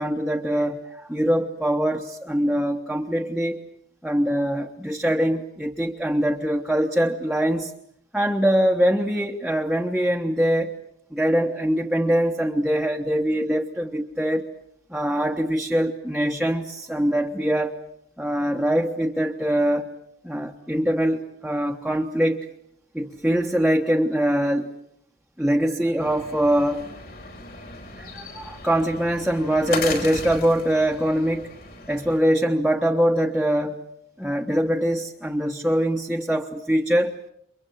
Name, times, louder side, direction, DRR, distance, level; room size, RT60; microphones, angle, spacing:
voice 1, 0.0-3.6 4.0-7.7 8.1-10.8 11.1-14.5 14.9-17.7 18.2-19.9 20.2-22.4 22.9-24.7 25.4-26.8 28.0-31.5 31.9-33.8 34.2-37.1, equal, 5° right, 1 dB, 1.3 m, -23 dB
sound 1, 26.0-32.2, left 3 dB, 50° left, 5.4 m, -36 dB
29.5 x 24.5 x 7.6 m, 0.76 s
head